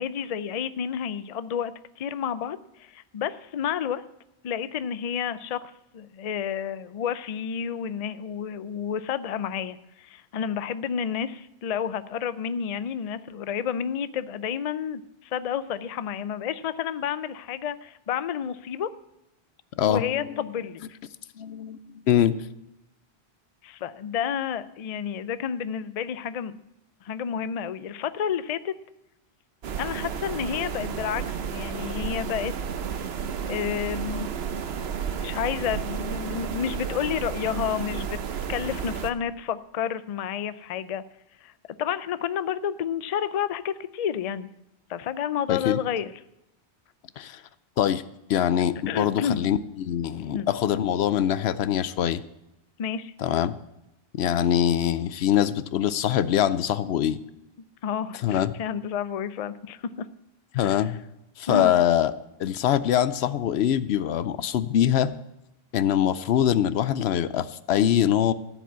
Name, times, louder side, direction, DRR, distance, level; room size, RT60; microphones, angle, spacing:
voice 1, 0.0-4.0 4.4-18.9 19.8-20.8 23.6-26.5 27.0-28.7 29.8-32.5 33.5-34.3 35.2-38.2 38.5-41.0 41.4-41.5 41.8-44.5 44.9-46.1 48.9-49.4 50.3-50.5 52.8-53.1 57.8-60.1 60.6-60.9 61.5-61.7, left 8 dB, 50° left, 14 dB, 0.5 m, -30 dB
voice 2, 19.8-20.4 21.4-22.4 45.5-45.8 47.2-47.4 47.8-48.0 48.3-52.2 53.2-53.6 54.2-57.2 58.2-58.5 60.5-61.0 61.4-62.1 62.4-65.1 65.7-68.3, left 10 dB, 80° left, 15 dB, 0.9 m, -23 dB
sound 1, 29.6-39.1, right 7 dB, 75° right, 1.0 m, -32 dB
14.0 x 5.1 x 8.0 m, 0.88 s
omnidirectional pair, 1.1 m